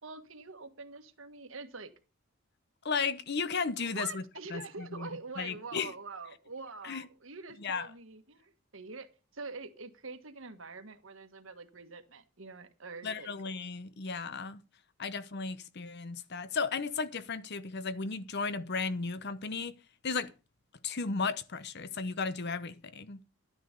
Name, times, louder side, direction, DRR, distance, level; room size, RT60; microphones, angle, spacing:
voice 1, 0.0-1.9 3.8-13.3, right 4 dB, 70° right, 1.6 m, -45 dB
voice 2, 2.8-4.2 4.5-5.1 5.4-5.9 6.8-7.1 7.6-7.9 13.0-14.6 15.0-19.7 20.0-20.3 20.8-23.2, left 4 dB, 55° left, 0.8 m, -35 dB
11.5 x 9.9 x 5.2 m
head